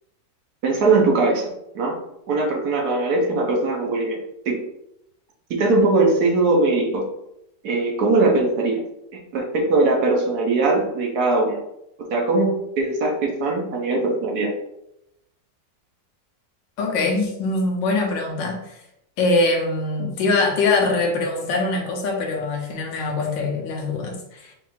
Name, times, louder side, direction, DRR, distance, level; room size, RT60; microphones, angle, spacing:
voice 1, 0.6-2.0 2.3-4.2 4.5-4.6 5.5-7.1 7.6-8.8 9.1-11.6 12.0-14.5, right 3 dB, 65° right, 0 dB, 1.2 m, -20 dB
voice 2, 16.8-18.8 19.2-24.5, left 3 dB, 90° left, 1 dB, 1.5 m, -23 dB
5.3 x 2.5 x 3.1 m, 0.82 s
omnidirectional pair, 2.0 m